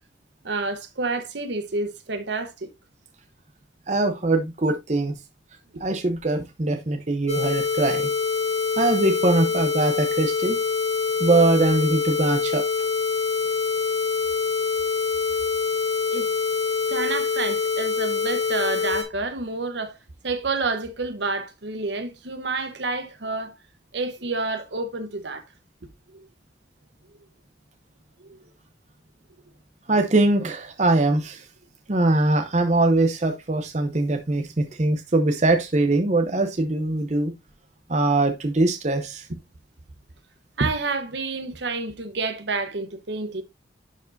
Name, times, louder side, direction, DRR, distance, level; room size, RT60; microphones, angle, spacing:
voice 1, 0.4-2.7 5.7-5.8 16.1-16.3 16.9-19.9 20.2-23.5 23.9-25.4 26.1-26.3 28.2-28.5 40.6-43.4, right 3 dB, 65° right, 1.0 m, -29 dB
voice 2, 3.9-5.1 5.8-8.1 8.8-10.6 11.2-12.6 29.9-31.4 31.9-37.3 37.9-39.3, right 2 dB, 35° right, 0.7 m, -22 dB
sound 1, 7.3-19.0, left 5 dB, 35° left, 2.1 m, -25 dB
11.0 x 4.7 x 2.6 m
head